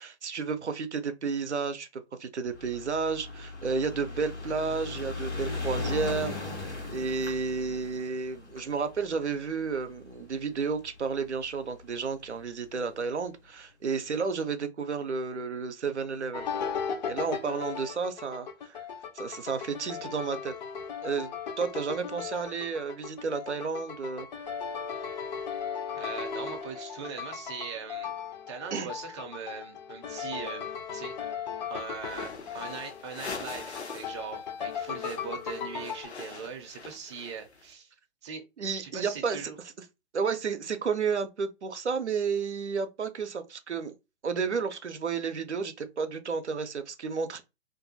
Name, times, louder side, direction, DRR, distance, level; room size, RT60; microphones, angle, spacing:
voice 1, 0.0-16.5 17.0-18.8 19.1-20.5 21.0-21.3 21.6-24.3 28.7-28.9 38.6-39.4 40.1-43.9 44.2-47.4, right 5 dB, 90° right, 0.5 m, -32 dB
sound 1, 2.5-11.0 11.8-11.9 12.1-12.2 12.4-12.5, left 3 dB, 90° left, 1.3 m, -37 dB
sound 2, 16.3-36.1, left 7 dB, 40° left, 0.5 m, -37 dB
voice 2, 25.9-28.1 28.5-30.7 30.9-31.4 31.7-37.9 38.2-38.4 38.7-39.6, right 6 dB, 25° right, 0.4 m, -40 dB
sound 3, 32.0-34.2 34.5-37.6, left 5 dB, 75° left, 0.8 m, -43 dB
2.6 x 2.3 x 2.6 m
figure-of-eight pair, 120°, 33 cm